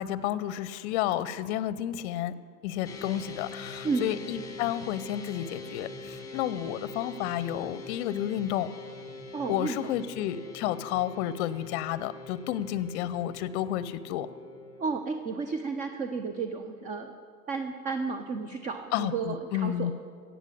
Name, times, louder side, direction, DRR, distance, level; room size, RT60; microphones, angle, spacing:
voice 1, 0.0-2.3 2.6-8.7 9.5-14.3 18.9-19.9, left 12 dB, 45° left, 17 dB, 0.7 m, -31 dB
sound 1, 2.8-15.0, left 3 dB, 5° left, 1.5 m, -43 dB
voice 2, 9.3-9.9 14.8-17.1 17.5-19.9, right 4 dB, 15° right, 8 dB, 0.5 m, -32 dB
16.5 x 7.4 x 8.5 m, 2.2 s
hypercardioid pair, 105°, 48 cm